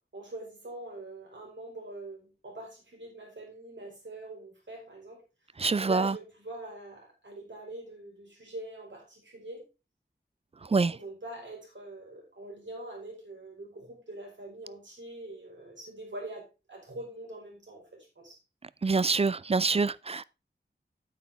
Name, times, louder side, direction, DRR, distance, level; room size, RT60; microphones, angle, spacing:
voice 1, 0.1-5.2 5.8-9.6 10.7-17.8 18.2-18.4, right 1 dB, 85° right, 4.5 m, -43 dB
voice 2, 5.6-6.0 10.7-10.9 18.8-20.2, right 4 dB, 35° right, 0.3 m, -25 dB
9.3 x 8.1 x 3.4 m
wide cardioid pair, 70°, 19 cm